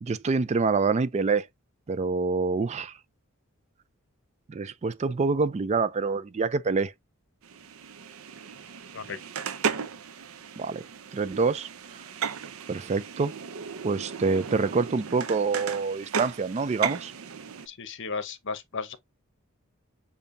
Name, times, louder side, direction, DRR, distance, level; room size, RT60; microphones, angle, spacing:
voice 1, 0.0-1.5 1.9-2.9 4.5-6.9 10.6-10.8 11.1-11.7 12.7-13.3 13.8-17.1, right 4 dB, 30° right, 0.4 m, -26 dB
sound 1, 7.4-17.7, right 6 dB, 80° right, 0.6 m, -35 dB
voice 2, 17.7-19.0, left 4 dB, 60° left, 0.8 m, -34 dB
6.9 x 2.8 x 2.6 m
head